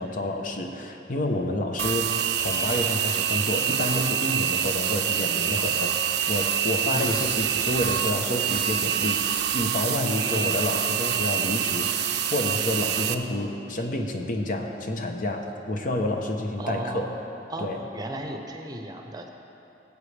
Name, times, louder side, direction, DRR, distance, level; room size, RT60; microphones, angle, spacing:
voice 1, 0.0-5.9 6.3-17.2 17.6-17.8, left 1 dB, 50° left, 3 dB, 0.9 m, -29 dB
sound 1, 1.8-13.1, right 9 dB, 65° right, 0.5 m, -26 dB
voice 2, 6.9-7.3 10.3-10.6 16.6-17.2 17.5-19.3, right 1 dB, 25° right, 3 dB, 0.8 m, -35 dB
18.5 x 8.2 x 3.4 m, 2.9 s
head